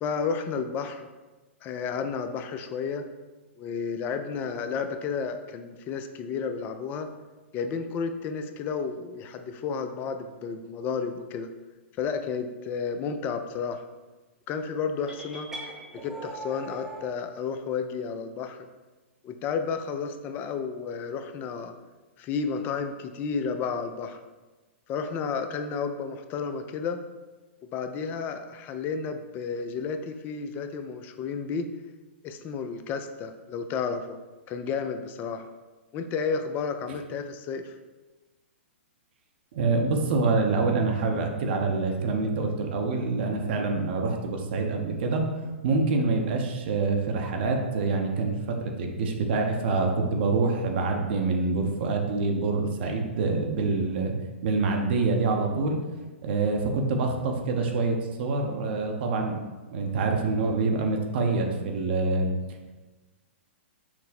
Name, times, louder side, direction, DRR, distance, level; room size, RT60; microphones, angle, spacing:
voice 1, 0.0-1.1 1.6-3.1 3.6-7.1 7.5-11.5 12.0-13.9 14.5-15.5 15.9-18.7 19.2-21.7 22.2-24.2 24.9-27.0 27.7-31.7 32.2-34.2 34.5-35.5 35.9-37.8, left 5 dB, 30° left, 8 dB, 0.4 m, -32 dB
sound 1, 15.1-17.1, right 1 dB, 5° right, 0.7 m, -40 dB
voice 2, 39.5-45.2 45.6-54.1 54.4-55.8 56.2-59.4 59.7-62.3, right 3 dB, 55° right, 2 dB, 0.7 m, -26 dB
5.9 x 2.1 x 4.2 m, 1.2 s
hypercardioid pair, 120°, 7 cm